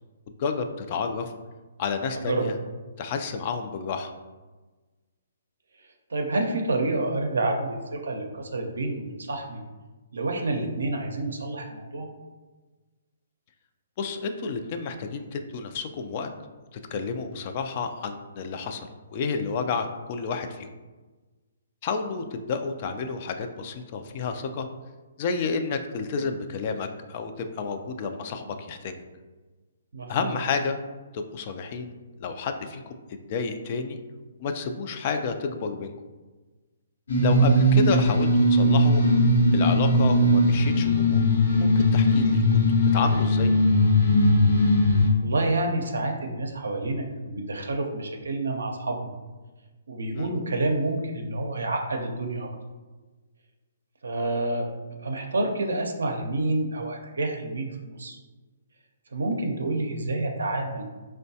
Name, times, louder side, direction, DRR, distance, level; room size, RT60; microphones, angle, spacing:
voice 1, 0.4-1.3 1.8-2.5 3.0-4.1 14.0-16.3 16.7-20.7 21.8-24.7 25.2-28.9 30.1-30.8 31.1-32.8 33.1-34.0 34.4-35.9 37.2-39.0 39.5-41.2 41.6-42.4 42.9-43.5 50.2-50.3, left 5 dB, 40° left, 6 dB, 0.3 m, -30 dB
voice 2, 2.1-2.5 6.1-7.8 8.0-9.6 10.1-12.1 29.9-30.3 44.8-49.1 49.9-52.5 54.0-54.7 55.0-58.2 59.1-60.8, right 2 dB, 90° right, 2 dB, 0.5 m, -28 dB
sound 1, 37.1-45.1, left 1 dB, 85° left, 0.8 m, -19 dB
4.5 x 2.1 x 2.7 m, 1.3 s
hypercardioid pair, 150°, 0 cm